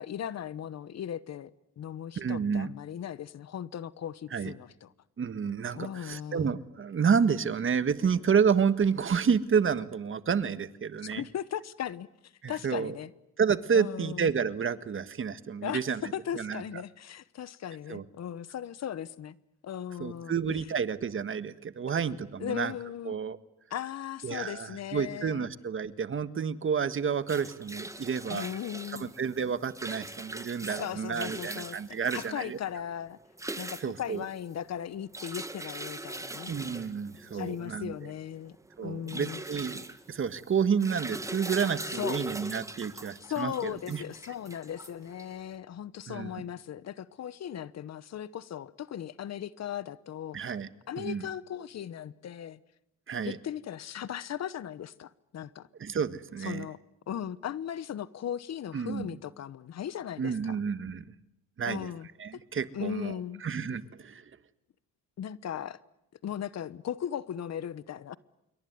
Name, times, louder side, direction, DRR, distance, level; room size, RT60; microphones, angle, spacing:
voice 1, 0.0-4.9 5.7-6.6 11.1-13.1 13.7-14.3 15.6-19.4 19.6-20.4 22.4-23.2 23.7-25.5 28.3-29.1 30.6-31.8 32.1-33.2 33.6-36.5 37.3-38.6 38.8-39.4 41.9-42.2 43.2-50.4 50.9-52.6 53.2-55.7 56.4-56.8 57.1-60.6 61.6-62.4 62.7-63.4 65.2-65.8 66.2-68.2, left 10 dB, 60° left, 1.1 m, -37 dB
voice 2, 2.2-2.7 4.3-4.5 5.2-11.2 12.4-13.0 13.4-16.0 16.3-16.6 17.9-18.0 20.0-22.7 23.0-23.4 24.2-28.5 29.0-32.6 33.8-34.2 36.5-38.1 38.8-39.8 40.1-44.0 46.1-46.3 50.3-50.7 51.0-51.3 53.1-53.4 55.8-56.7 58.7-59.1 60.2-61.1 61.6-61.9 62.2-64.3, right 6 dB, 45° right, 1.5 m, -30 dB
sound 1, 27.0-45.5, right 2 dB, 10° right, 1.8 m, -41 dB
27.0 x 23.0 x 9.5 m
cardioid pair, 90°, 30 cm